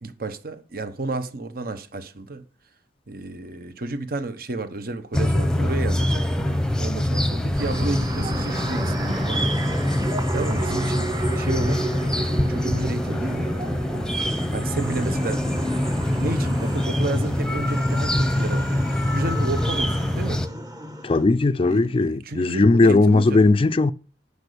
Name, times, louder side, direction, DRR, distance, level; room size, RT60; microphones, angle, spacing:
voice 1, 0.0-2.4 3.1-9.4 10.3-13.5 14.5-15.4 15.8-20.4 21.6-23.4, right 2 dB, 55° right, 1.1 m, -32 dB
sound 1, 5.1-20.5, left 1 dB, 5° left, 0.9 m, -24 dB
sound 2, 7.6-21.3, right 2 dB, 20° right, 1.2 m, -34 dB
voice 2, 21.0-23.9, left 3 dB, 30° left, 0.4 m, -18 dB
10.5 x 5.1 x 6.8 m
head